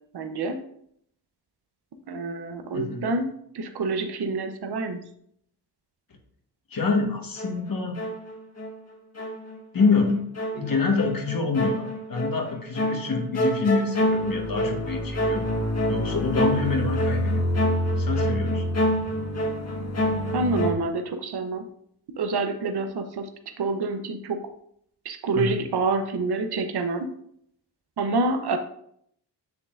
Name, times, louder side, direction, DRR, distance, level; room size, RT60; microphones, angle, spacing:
voice 1, 0.1-0.6 2.1-5.1 10.6-10.7 20.3-21.7 22.2-23.3 23.6-24.5 25.0-27.1 28.0-28.6, right 3 dB, 65° right, 7 dB, 0.9 m, -27 dB
voice 2, 6.7-8.0 9.7-10.2 10.6-15.4 15.9-17.5 18.0-18.7 25.3-25.5, left 4 dB, 55° left, 2 dB, 1.6 m, -26 dB
sound 1, 7.4-8.8 9.2-20.7, equal, 35° left, 1.5 m, -26 dB
7.0 x 6.5 x 2.5 m, 0.68 s
cardioid pair, 60°, 42 cm